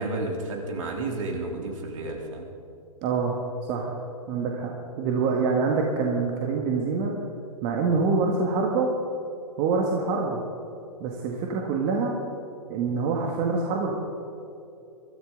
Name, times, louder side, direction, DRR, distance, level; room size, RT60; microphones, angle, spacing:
voice 1, 0.0-2.5, right 2 dB, 60° right, 1 dB, 3.4 m, -31 dB
voice 2, 3.0-3.4 3.7-4.0 4.3-7.1 7.6-8.9 9.6-10.4 11.0-12.1 12.7-13.9, right 4 dB, 35° right, 0 dB, 1.8 m, -25 dB
24.0 x 14.0 x 3.9 m, 2.7 s
figure-of-eight pair, 120°, 19 cm